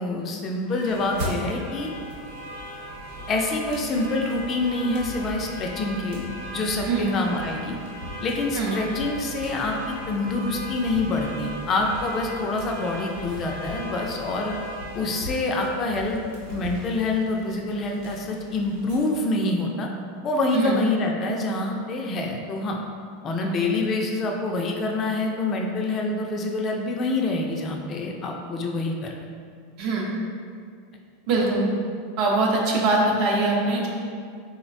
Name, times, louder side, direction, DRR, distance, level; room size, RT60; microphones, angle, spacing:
voice 1, 0.0-1.9 3.3-6.3 6.5-7.8 8.2-14.5 14.9-16.2 16.5-19.9 20.2-22.8 23.2-29.1, left 2 dB, 35° left, 1 dB, 0.3 m, -26 dB
sound 1, 0.6-19.0, equal, 75° right, 1.0 m, -37 dB
voice 2, 29.8-30.1 31.3-31.6 32.2-33.9, right 3 dB, 55° right, -2 dB, 0.6 m, -22 dB
3.8 x 2.1 x 2.5 m, 2.2 s
supercardioid pair, 125°, 0 cm